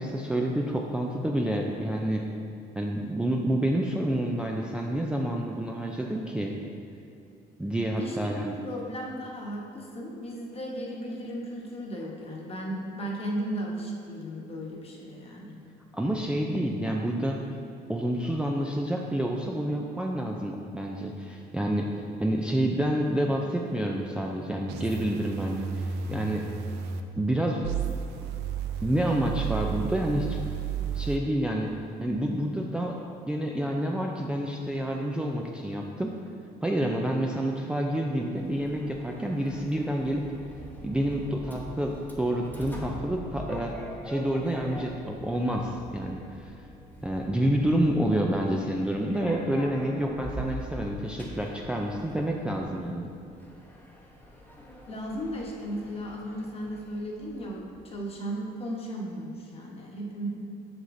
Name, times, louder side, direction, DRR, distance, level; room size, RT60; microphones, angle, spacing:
voice 1, 0.0-2.2 2.8-6.5 7.6-8.5 15.9-17.4 17.9-21.9 22.2-26.4 27.2-27.7 28.2-28.3 28.8-30.4 30.9-31.7 32.0-33.0 33.3-36.1 36.6-40.2 40.8-43.7 44.0-46.5 47.0-53.1, right 1 dB, 5° right, -1 dB, 0.4 m, -28 dB
voice 2, 8.0-15.6 54.9-60.3, equal, 35° left, -2 dB, 1.1 m, -35 dB
sound 1, 24.7-27.0 27.6-31.2, right 7 dB, 80° right, 0.5 m, -33 dB
Sliding door, 38.4-58.0, equal, 10° left, 0.9 m, -44 dB
8.0 x 5.6 x 2.6 m, 2.6 s
cardioid pair, 110°, 17 cm